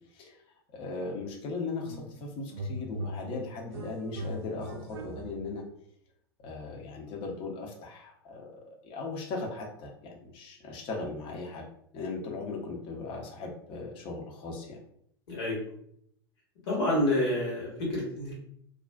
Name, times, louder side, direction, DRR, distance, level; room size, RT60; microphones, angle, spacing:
voice 1, 0.7-5.7 6.4-11.7 11.9-14.8, left 3 dB, 40° left, 0 dB, 0.7 m, -38 dB
sound 1, 1.8-2.2 2.5-5.6, right 1 dB, 70° right, 0.4 m, -40 dB
voice 2, 15.3-15.6 16.7-18.3, left 1 dB, 65° left, -5 dB, 1.2 m, -28 dB
2.4 x 2.3 x 2.2 m, 0.69 s
figure-of-eight pair, 90°, 14 cm